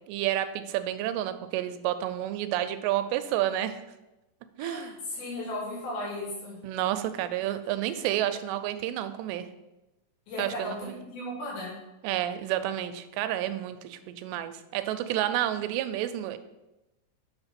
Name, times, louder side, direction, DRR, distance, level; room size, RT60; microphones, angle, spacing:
voice 1, 0.1-3.8 4.6-4.9 6.6-9.5 10.4-11.0 12.0-16.4, right 12 dB, 85° right, 10 dB, 2.8 m, -30 dB
voice 2, 4.6-6.6 10.3-11.8, left 1 dB, 85° left, -5 dB, 5.2 m, -36 dB
8.4 x 4.4 x 5.8 m, 0.99 s
omnidirectional pair, 4.9 m